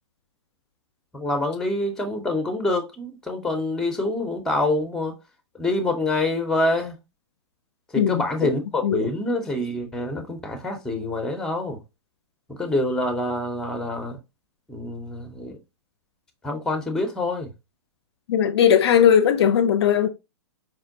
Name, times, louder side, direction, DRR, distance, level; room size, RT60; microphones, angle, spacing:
voice 1, 1.1-5.1 5.5-7.0 7.9-11.8 12.6-14.2 14.7-15.6 16.4-17.5, left 2 dB, 5° left, 0.7 m, -26 dB
voice 2, 8.0-8.6 8.8-9.1 18.3-20.1, left 8 dB, 55° left, 0.4 m, -19 dB
4.4 x 2.1 x 2.6 m
hypercardioid pair, 120°, 16 cm